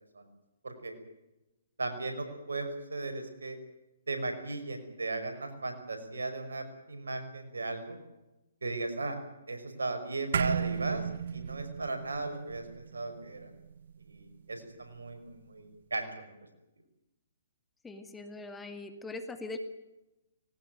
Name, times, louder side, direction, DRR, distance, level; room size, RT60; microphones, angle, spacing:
voice 1, 0.6-1.0 1.8-3.6 4.1-8.0 8.6-9.2 9.5-11.0 11.3-13.5 14.1-16.3, right 2 dB, 85° right, 6 dB, 5.6 m, -36 dB
sound 1, 10.3-15.0, right 7 dB, 65° right, 0.8 m, -35 dB
voice 2, 17.8-19.6, left 3 dB, 10° left, 7 dB, 2.3 m, -41 dB
20.0 x 18.5 x 9.3 m, 0.96 s
hypercardioid pair, 135°, 0 cm